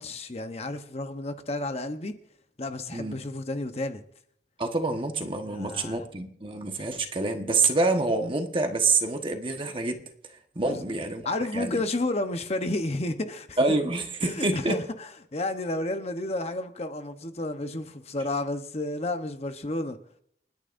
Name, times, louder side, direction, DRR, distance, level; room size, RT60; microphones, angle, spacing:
voice 1, 0.0-2.1 2.6-4.0 5.5-6.0 10.7-11.0 11.2-13.6 14.2-14.8 15.3-20.0, left 2 dB, 35° left, 0.9 m, -31 dB
voice 2, 4.6-10.0 10.5-11.8 13.6-14.8, right 3 dB, 30° right, 1.3 m, -27 dB
29.5 x 10.0 x 2.6 m
head